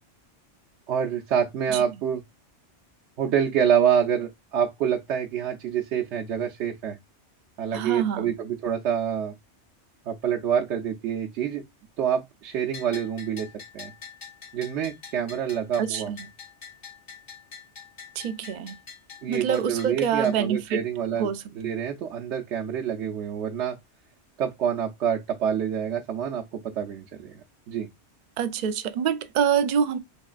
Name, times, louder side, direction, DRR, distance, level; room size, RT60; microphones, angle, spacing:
voice 1, 0.9-2.2 3.2-7.0 7.6-9.3 10.1-11.6 12.0-13.5 13.7-13.9 14.5-16.1 19.2-21.3 21.6-23.8 24.4-27.4 27.7-27.9, right 8 dB, 80° right, 0.9 m, -26 dB
voice 2, 7.7-8.3 15.8-16.2 18.2-18.8 19.3-20.9 21.2-21.4 28.4-30.0, right 8 dB, 60° right, 0.5 m, -26 dB
Bell, 12.7-20.4, left 6 dB, 85° left, 1.9 m, -45 dB
3.7 x 3.2 x 2.3 m
omnidirectional pair, 1.2 m